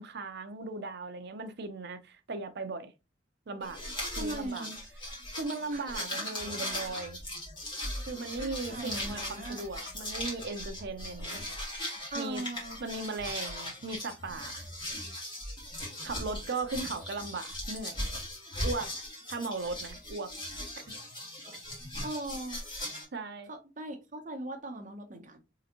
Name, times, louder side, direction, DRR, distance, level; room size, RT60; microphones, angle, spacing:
voice 1, 0.0-2.9 3.5-3.8 4.2-4.7 5.3-7.2 8.1-11.5 12.1-12.4 12.8-14.7 16.0-18.0 18.6-18.9 19.3-20.3 23.1-23.5, right 3 dB, 60° right, 0.6 m, -37 dB
sound 1, 3.6-23.0, left 1 dB, 25° left, 1.9 m, -39 dB
voice 2, 4.2-4.8 5.7-5.8 8.4-9.7 12.1-12.8 22.0-22.6 23.5-25.4, right 1 dB, 45° right, 0.9 m, -39 dB
3.8 x 3.3 x 2.9 m
head